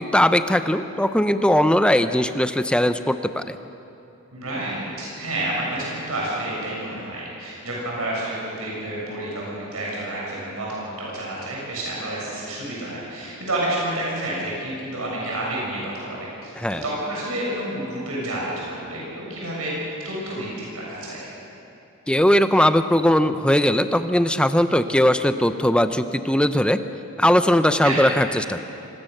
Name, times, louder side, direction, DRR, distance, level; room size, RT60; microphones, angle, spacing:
voice 1, 0.0-3.6 16.6-16.8 22.1-26.8 27.2-28.6, left 1 dB, 5° left, 10 dB, 0.7 m, -19 dB
voice 2, 4.3-16.5 16.8-19.7 20.0-21.3 27.8-28.1, right 1 dB, 90° right, -5 dB, 7.0 m, -29 dB
25.5 x 20.0 x 6.7 m, 2.8 s
head